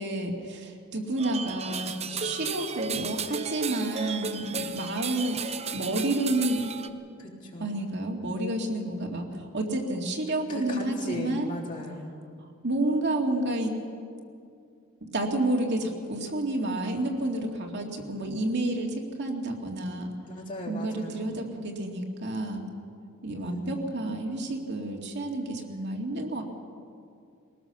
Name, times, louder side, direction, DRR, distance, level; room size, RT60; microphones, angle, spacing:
voice 1, 0.0-6.7 7.6-11.5 12.6-13.8 15.0-20.1 20.7-22.7 23.2-26.4, right 1 dB, 50° right, 1 dB, 2.3 m, -30 dB
sound 1, 1.2-6.9, right 5 dB, 30° right, 0.8 m, -34 dB
voice 2, 7.2-7.8 10.5-12.1 20.3-21.4 23.4-23.9, left 1 dB, 35° left, -3 dB, 3.6 m, -38 dB
22.0 x 18.5 x 7.0 m, 2.3 s
head